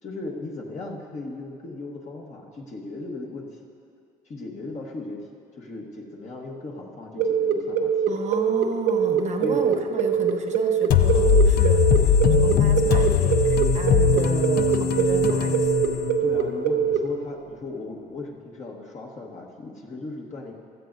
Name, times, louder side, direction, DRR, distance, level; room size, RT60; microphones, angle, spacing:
voice 1, 0.0-3.6 4.2-5.2 5.5-8.0 9.4-9.7 16.2-20.5, left 2 dB, 45° left, -1 dB, 1.3 m, -37 dB
sound 1, 7.2-17.0, right 8 dB, 85° right, 0.9 m, -22 dB
voice 2, 8.1-15.7, right 5 dB, 45° right, 4 dB, 1.0 m, -33 dB
sound 2, 10.9-16.5, left 7 dB, 65° left, 0.5 m, -21 dB
16.0 x 13.0 x 2.6 m, 2.4 s
cardioid pair, 110°, 17 cm